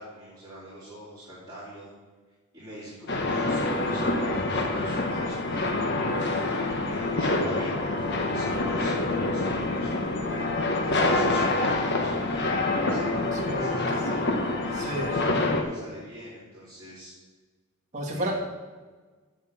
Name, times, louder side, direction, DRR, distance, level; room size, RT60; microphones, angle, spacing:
voice 1, 0.0-1.9 2.5-6.2 6.4-17.1 18.1-18.3, equal, 15° right, -12 dB, 3.2 m, -43 dB
sound 1, 3.1-15.6, left 2 dB, 50° left, 1.1 m, -26 dB
voice 2, 13.4-13.9 14.8-15.2 17.9-18.3, right 1 dB, 35° right, -2 dB, 2.1 m, -31 dB
7.3 x 7.2 x 7.1 m, 1.4 s
head